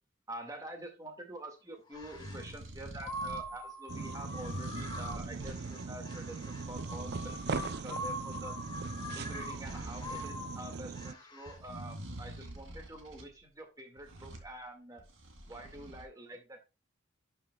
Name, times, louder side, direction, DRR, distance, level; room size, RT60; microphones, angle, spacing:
voice 1, 0.3-8.5 9.1-15.1 15.4-16.6, right 1 dB, 20° right, 3 dB, 2.0 m, -47 dB
sound 1, 1.9-2.5 3.0-11.6, left 1 dB, 20° left, 2.0 m, -43 dB
sound 2, 1.9-3.5 4.2-5.6 6.3-7.9 8.2-10.3 11.4-13.3 14.0-14.5 15.0-16.0, right 1 dB, 80° right, 2.4 m, -46 dB
sound 3, 3.9-11.1, right 4 dB, 55° right, 0.5 m, -40 dB
11.5 x 7.1 x 2.3 m, 0.27 s
head